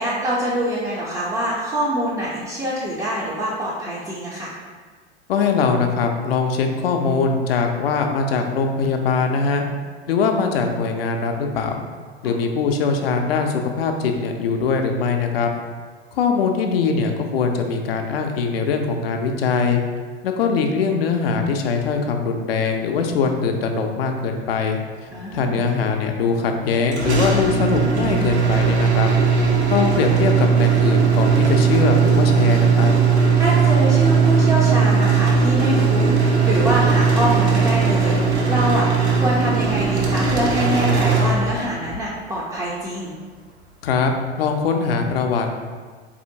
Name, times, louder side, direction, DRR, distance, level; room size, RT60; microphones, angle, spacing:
voice 1, 0.0-4.5 12.2-12.3 25.1-25.7 33.3-43.2, right 1 dB, 10° right, -6 dB, 0.4 m, -25 dB
voice 2, 5.3-9.6 10.1-11.7 12.2-15.5 16.1-19.8 20.2-24.8 25.3-29.1 29.7-32.9 43.8-45.5, left 5 dB, 65° left, 4 dB, 0.5 m, -21 dB
sound 1, 26.9-41.9, right 5 dB, 80° right, 0.7 m, -18 dB
4.2 x 2.7 x 2.7 m, 1.5 s
figure-of-eight pair, 85°, 33 cm